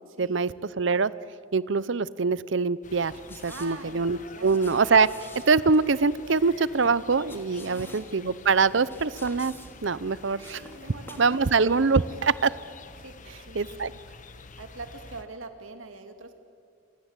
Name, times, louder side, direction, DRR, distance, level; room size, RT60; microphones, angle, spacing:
voice 1, 0.2-1.1 1.5-3.1 3.4-5.1 5.5-9.5 9.8-10.6 11.2-12.5 13.5-13.9, right 4 dB, 65° right, 18 dB, 0.7 m, -24 dB
sound 1, 2.8-15.2, left 3 dB, 40° left, 1.3 m, -48 dB
sound 2, 3.1-11.4 11.6-11.8, left 2 dB, 10° left, 2.6 m, -50 dB
voice 2, 3.5-4.6 7.6-8.1 10.5-11.5 11.8-12.0 13.0-13.8 14.6-16.4, right 3 dB, 85° right, 7 dB, 2.7 m, -43 dB
27.5 x 25.5 x 8.3 m, 2.2 s
head